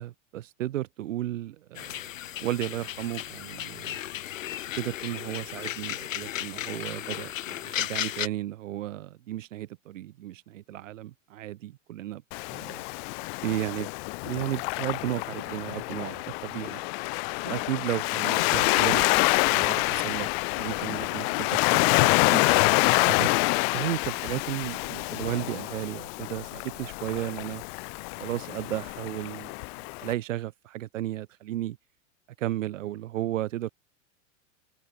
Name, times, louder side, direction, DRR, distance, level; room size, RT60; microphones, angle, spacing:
voice 1, 0.0-2.1 2.4-4.0 4.8-12.2 12.5-12.8 13.4-13.9 14.2-16.8 17.4-19.2 19.5-20.3 20.5-22.4 23.1-23.3 23.7-27.6 28.2-29.5 30.0-31.8 32.4-33.7, right 14 dB, 80° right, 7.3 m, -34 dB
sound 1, 1.7-8.3, left 12 dB, 85° left, 2.5 m, -35 dB
Waves surf, 12.3-30.1, left 34 dB, 55° left, 1.1 m, -27 dB
supercardioid pair, 125°, 38 cm